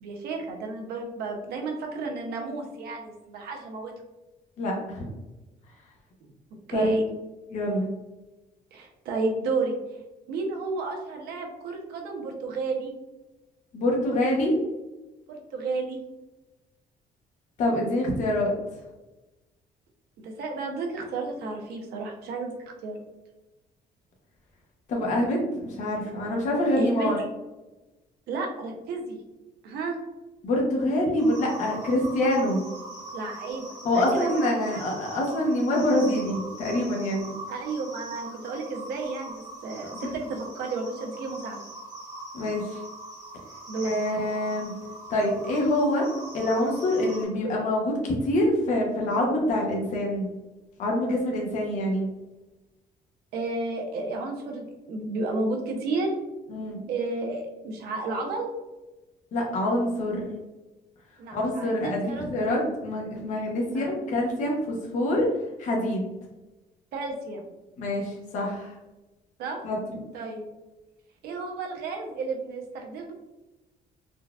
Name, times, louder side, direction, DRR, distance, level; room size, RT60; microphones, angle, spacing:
voice 1, 0.0-3.9 6.7-7.1 8.7-9.8 10.3-12.9 15.3-16.0 20.2-22.6 22.8-23.0 26.8-27.1 28.3-29.2 29.6-30.0 33.1-34.3 34.6-34.8 37.5-41.6 43.7-43.9 53.3-56.2 56.9-58.5 61.2-62.5 63.7-64.0 66.9-67.4 69.4-69.6 70.1-70.5 71.2-73.1, right 3 dB, 85° right, 2 dB, 0.7 m, -32 dB
voice 2, 4.6-5.1 6.7-6.9 7.5-7.9 13.7-14.6 17.6-18.5 24.9-27.2 30.4-32.6 33.8-37.3 39.9-40.1 42.3-42.8 43.8-44.7 45.1-46.1 46.3-50.3 50.8-52.1 56.5-56.8 59.3-60.3 61.3-65.3 65.6-66.1 67.8-68.7 69.6-70.0, left 1 dB, 50° left, -2 dB, 0.7 m, -26 dB
sound 1, 31.2-47.3, right 2 dB, 20° right, 1.0 m, -42 dB
3.8 x 2.2 x 2.3 m, 1.1 s
cardioid pair, 155°, 16 cm